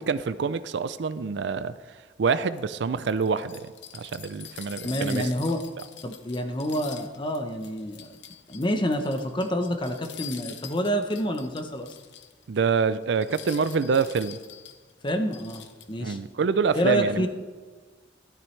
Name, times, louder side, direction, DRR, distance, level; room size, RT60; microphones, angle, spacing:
voice 1, 0.0-5.3 12.5-14.4 16.0-17.3, right 5 dB, 65° right, 0.4 m, -26 dB
sound 1, 2.5-12.4 12.8-12.9 13.2-16.1, left 10 dB, 65° left, 0.7 m, -45 dB
voice 2, 4.8-5.6 6.0-8.1 8.5-11.9 15.0-16.2 16.7-17.3, equal, 25° left, 0.8 m, -27 dB
12.5 x 12.0 x 3.2 m
head